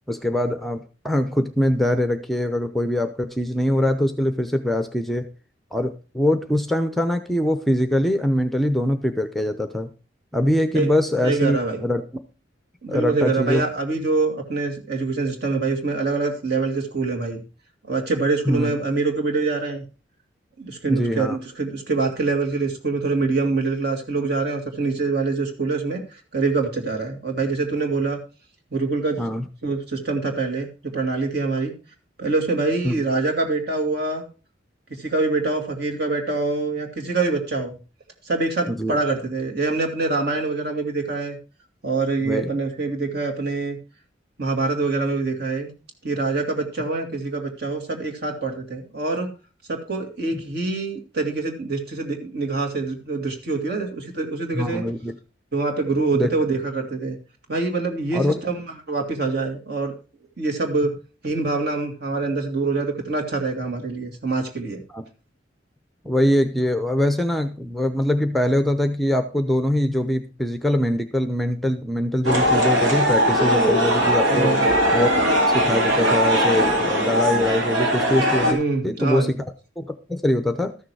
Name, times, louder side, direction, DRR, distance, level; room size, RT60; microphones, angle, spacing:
voice 1, 0.1-5.3 5.7-9.9 10.3-12.0 12.9-13.6 18.5-18.7 20.9-21.4 29.2-29.5 32.8-33.0 38.7-39.0 42.2-42.6 50.3-50.4 54.5-55.1 56.1-56.3 58.1-58.3 64.9-65.0 66.0-74.5 74.9-75.2 75.5-79.4 79.8-80.8, left 1 dB, ahead, 8 dB, 0.6 m, -23 dB
voice 2, 11.2-11.8 12.8-17.4 17.8-19.8 20.6-28.2 28.7-29.2 29.6-30.7 30.9-31.7 32.2-34.2 35.0-37.8 38.2-41.4 41.8-43.8 44.4-45.7 46.0-49.3 49.7-54.8 55.5-57.2 57.5-58.6 58.9-60.0 60.4-60.9 61.2-64.8 74.3-74.7 78.4-79.3, right 3 dB, 60° right, 2 dB, 2.5 m, -25 dB
sound 1, 72.2-78.5, equal, 85° right, 2.9 m, -20 dB
13.5 x 6.6 x 4.7 m, 0.34 s
head